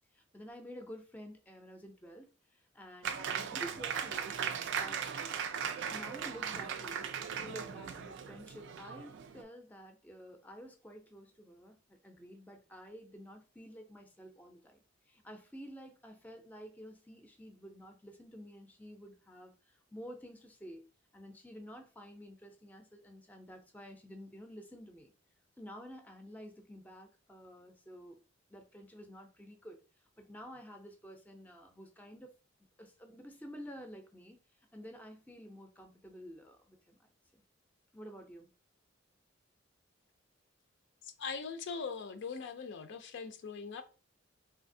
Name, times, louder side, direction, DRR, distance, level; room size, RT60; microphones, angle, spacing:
voice 1, 0.1-4.3 4.7-5.1 5.9-20.9 21.1-25.1 25.6-28.2 28.5-29.8 30.2-32.3 32.8-34.4 34.7-37.1 37.9-38.5, equal, 10° left, 0.5 m, -50 dB
Applause, 3.0-9.4, right 7 dB, 65° right, 0.4 m, -38 dB
voice 2, 41.0-43.8, left 5 dB, 65° left, 0.4 m, -41 dB
3.3 x 2.7 x 2.6 m
head